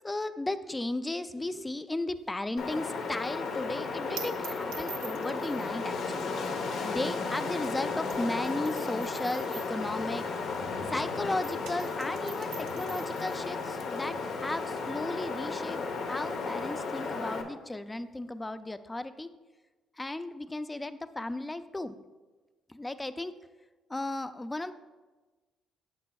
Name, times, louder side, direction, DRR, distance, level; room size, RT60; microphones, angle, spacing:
voice 1, 0.0-6.3 6.6-10.2 10.9-15.8 16.1-19.3 20.0-22.0 22.7-23.3 23.9-24.7, left 2 dB, 15° left, 11 dB, 0.4 m, -35 dB
sound 1, 2.1-11.0 11.3-18.5, right 8 dB, 90° right, 0.8 m, -48 dB
Wind, 2.6-17.4, left 4 dB, 80° left, 0.9 m, -34 dB
11.0 x 6.6 x 2.3 m, 1.2 s
cardioid pair, 90°, 0 cm